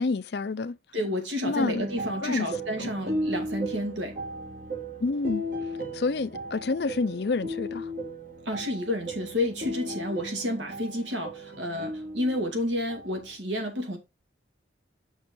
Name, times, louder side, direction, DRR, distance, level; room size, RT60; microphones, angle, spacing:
voice 1, 0.0-0.8 1.4-1.9 2.2-2.5 2.8-2.9 5.0-5.4 5.9-7.9, left 3 dB, 60° left, 0.5 m, -28 dB
voice 2, 0.9-4.2 8.5-14.0, left 1 dB, 80° right, 2.2 m, -30 dB
sound 1, 1.6-13.3, right 1 dB, 45° right, 1.3 m, -36 dB
6.3 x 6.1 x 3.7 m
head